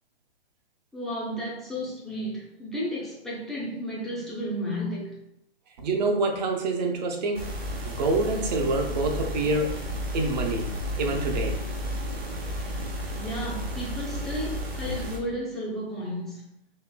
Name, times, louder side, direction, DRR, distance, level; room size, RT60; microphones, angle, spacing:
voice 1, 0.9-5.2 13.1-16.4, equal, ahead, 0.5 m, -33 dB
voice 2, 5.8-7.5 7.8-9.7 10.1-10.7 11.0-11.6, right 2 dB, 45° right, 0.7 m, -26 dB
sound 1, 7.3-15.2, equal, 75° right, 1.1 m, -32 dB
4.2 x 2.7 x 2.2 m
figure-of-eight pair, 125°, 31 cm